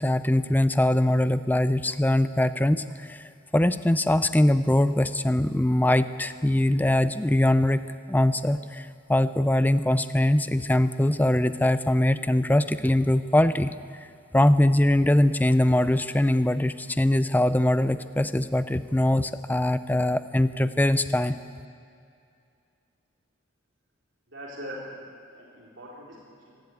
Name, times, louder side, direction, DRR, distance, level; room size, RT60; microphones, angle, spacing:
voice 1, 0.0-7.8 8.1-14.1 14.3-21.4, left 1 dB, 10° left, 12 dB, 0.5 m, -22 dB
voice 2, 24.3-26.6, equal, 60° right, -5 dB, 4.1 m, -42 dB
25.0 x 13.0 x 9.4 m, 2.4 s
head